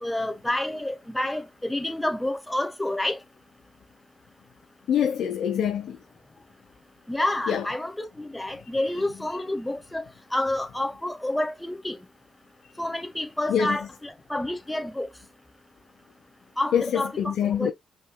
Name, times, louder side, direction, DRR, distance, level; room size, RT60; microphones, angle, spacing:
voice 1, 0.0-3.2 7.1-10.0 10.3-12.0 12.8-15.1 16.6-17.1 17.5-17.7, left 1 dB, 10° left, 1.1 m, -29 dB
voice 2, 4.9-6.0 7.5-7.6 13.5-13.8 16.7-17.7, left 8 dB, 70° left, 0.8 m, -25 dB
5.3 x 3.5 x 2.3 m
cardioid pair, 90°, 0 cm